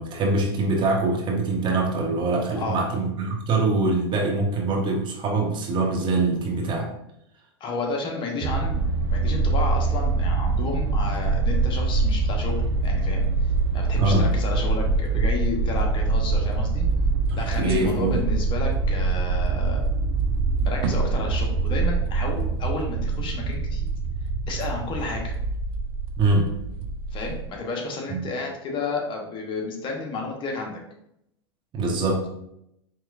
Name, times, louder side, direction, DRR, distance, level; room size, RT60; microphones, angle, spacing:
voice 1, 0.0-6.9 14.0-14.3 17.6-18.1 26.2-26.5 28.1-28.2 31.7-32.3, right 3 dB, 35° right, 0 dB, 1.0 m, -23 dB
voice 2, 7.6-13.3 13.7-16.9 17.3-19.8 20.6-23.9 24.5-25.3 27.1-30.8, left 3 dB, 35° left, 1 dB, 0.9 m, -31 dB
sound 1, 8.4-27.5, right 3 dB, 65° right, 0.6 m, -24 dB
4.7 x 3.0 x 2.4 m, 0.81 s
hypercardioid pair, 100°, 14 cm